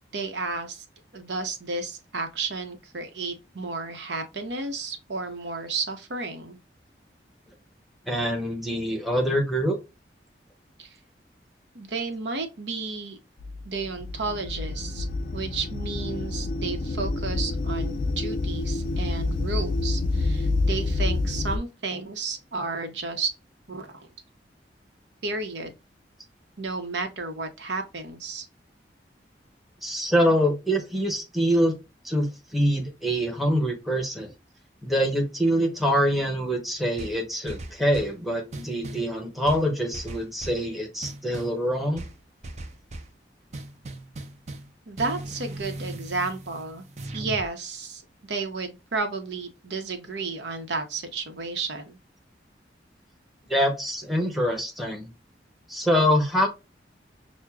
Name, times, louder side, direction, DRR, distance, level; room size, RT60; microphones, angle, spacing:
voice 1, 0.1-0.8 1.1-6.6 10.8-10.9 11.7-13.2 13.6-15.1 15.3-23.3 23.7-24.1 25.2-25.7 26.6-28.5 44.9-46.8 47.1-52.0, right 3 dB, 85° right, 0.8 m, -32 dB
voice 2, 8.1-9.8 29.8-31.8 32.0-34.3 34.8-42.0 53.5-55.1 55.7-56.5, equal, ahead, 0.9 m, -25 dB
sound 1, 13.4-21.6, left 2 dB, 50° left, 0.4 m, -28 dB
sound 2, 37.0-38.2 38.5-39.1 39.5-40.7 41.0-41.6 42.0-43.2 43.5-44.7 45.0-47.5, right 2 dB, 40° right, 0.5 m, -38 dB
6.1 x 2.1 x 2.3 m
head